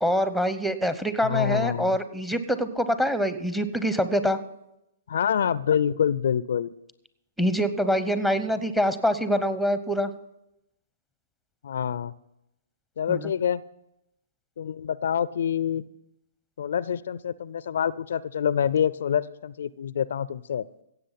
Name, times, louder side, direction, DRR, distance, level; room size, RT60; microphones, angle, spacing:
voice 1, 0.0-4.4 7.4-10.1 13.1-13.3, equal, 5° right, 12 dB, 0.8 m, -25 dB
voice 2, 1.2-2.0 5.1-6.7 11.6-12.1 13.0-13.6 14.6-15.8 16.6-20.6, left 8 dB, 65° left, 19 dB, 0.4 m, -26 dB
16.5 x 7.7 x 5.8 m, 0.86 s
hypercardioid pair, 130°, 0 cm